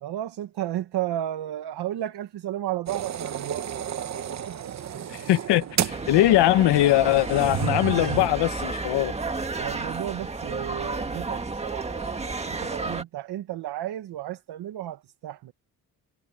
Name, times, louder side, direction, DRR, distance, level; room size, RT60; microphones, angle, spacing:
voice 1, 0.0-3.8 4.5-4.7 9.5-15.5, right 12 dB, 70° right, 1.4 m, -33 dB
sound 1, 2.9-8.3, right 10 dB, 40° right, 1.2 m, -32 dB
voice 2, 5.1-9.1, left 15 dB, 85° left, 1.1 m, -21 dB
sound 2, 5.9-13.0, right 3 dB, 15° right, 1.7 m, -32 dB
cardioid pair, 155°, 40 cm